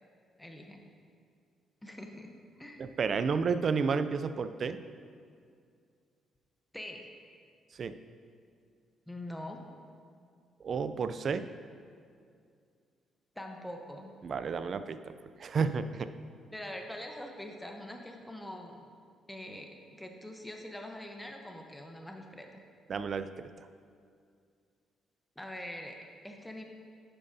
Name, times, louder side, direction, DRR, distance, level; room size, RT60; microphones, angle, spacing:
voice 1, 0.4-0.8 1.8-2.3 2.6-2.9 6.7-7.1 9.1-9.6 13.4-14.1 16.5-18.8 19.3-22.6 25.4-26.0 26.2-26.6, left 1 dB, 5° left, 2 dB, 0.9 m, -43 dB
voice 2, 2.8-4.8 7.7-7.9 10.6-11.5 14.2-16.1 22.9-23.3 23.6-23.7, right 5 dB, 50° right, 11 dB, 0.4 m, -31 dB
11.0 x 8.8 x 2.7 m, 2.2 s
cardioid pair, 90°, 0 cm